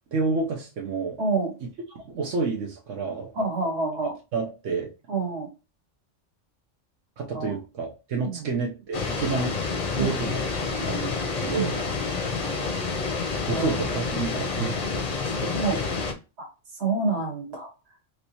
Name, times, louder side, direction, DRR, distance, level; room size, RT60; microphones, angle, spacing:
voice 1, 0.1-1.2 1.6-1.7 2.0-3.3 4.3-4.9 7.2-9.6 10.0-10.5 10.7-11.8 13.5-14.8 15.1-15.5, right 4 dB, 85° right, -1 dB, 1.1 m, -29 dB
voice 2, 1.2-1.5 3.3-4.1 5.1-5.5 7.3-7.6 8.2-8.5 9.9-10.2 11.5-11.7 13.5-13.8 15.5-15.8 16.4-16.5 16.8-17.7, right 3 dB, 60° right, 2 dB, 1.4 m, -27 dB
sound 1, 8.9-16.1, left 4 dB, 40° left, 0.6 m, -28 dB
3.2 x 3.0 x 2.8 m, 0.30 s
omnidirectional pair, 1.3 m